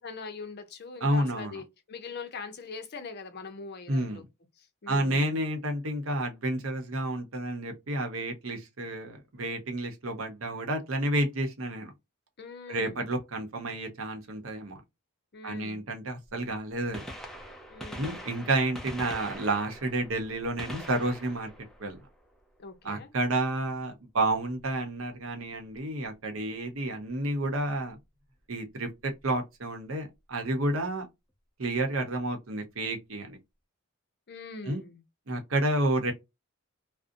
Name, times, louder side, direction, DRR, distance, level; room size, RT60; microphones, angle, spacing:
voice 1, 0.0-4.2 4.6-5.4 12.4-13.1 15.3-15.9 17.7-18.3 22.6-23.1 34.3-35.0, left 4 dB, 50° left, 0.6 m, -42 dB
voice 2, 1.0-1.6 3.9-4.2 4.9-11.9 12.7-14.8 15.4-17.1 18.0-21.5 21.8-22.0 22.8-28.0 28.5-31.1 31.6-33.4 34.7-34.8 35.3-36.1, right 1 dB, 70° right, 0.8 m, -30 dB
Gunshot gunfire, 16.9-22.7 24.6-24.7 25.7-25.8 27.4-27.5 28.9-29.0 29.2-29.3, equal, ahead, 0.5 m, -43 dB
2.5 x 2.1 x 2.5 m
head